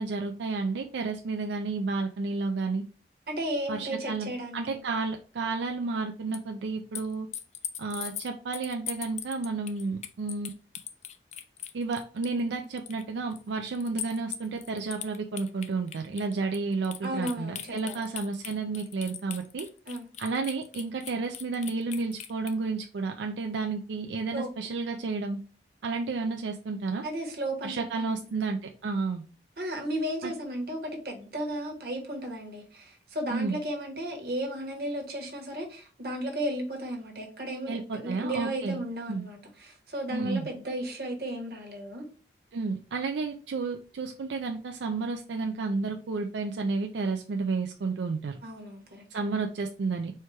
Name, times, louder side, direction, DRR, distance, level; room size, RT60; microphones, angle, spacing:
voice 1, 0.0-2.8 3.7-7.3 7.8-10.5 11.7-19.7 20.2-25.4 25.8-27.0 27.6-29.2 30.2-30.3 33.3-33.6 37.7-38.8 39.1-39.3 40.1-40.5 42.5-48.4 49.1-50.2, right 4 dB, 90° right, 4 dB, 0.4 m, -31 dB
voice 2, 3.3-4.8 17.0-18.0 19.9-20.1 24.3-24.5 27.0-28.2 29.6-42.1 48.4-49.0, right 1 dB, 60° right, 1 dB, 1.2 m, -34 dB
sound 1, 6.3-6.4 7.0-12.4 12.8-13.0 13.3-13.4 13.8-22.5, left 10 dB, 40° left, 0.3 m, -40 dB
4.4 x 2.3 x 4.5 m, 0.38 s
head